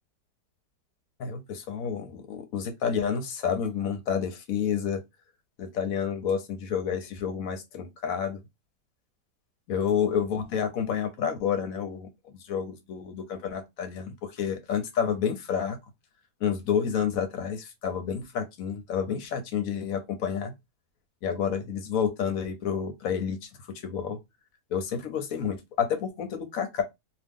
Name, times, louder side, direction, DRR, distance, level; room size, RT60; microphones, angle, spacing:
voice 1, 1.2-5.0 5.6-8.4 9.7-15.8 16.4-20.5 21.2-24.2 24.7-26.8, left 7 dB, 65° left, 0.9 m, -29 dB
2.8 x 2.3 x 3.4 m
omnidirectional pair, 1.9 m